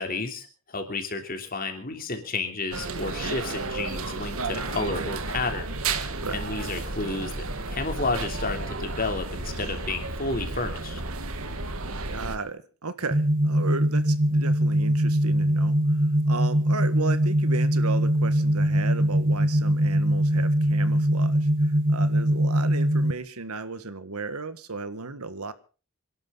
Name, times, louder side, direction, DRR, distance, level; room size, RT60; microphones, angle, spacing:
voice 1, 0.0-5.7 6.3-11.0, left 3 dB, 40° left, 3.2 m, -31 dB
sound 1, 2.7-12.4, right 3 dB, 75° right, 1.8 m, -32 dB
voice 2, 12.0-16.0 16.3-25.5, right 3 dB, 90° right, 1.5 m, -35 dB
sound 2, 13.1-23.1, right 1 dB, 40° right, 1.1 m, -22 dB
26.5 x 12.0 x 3.9 m
head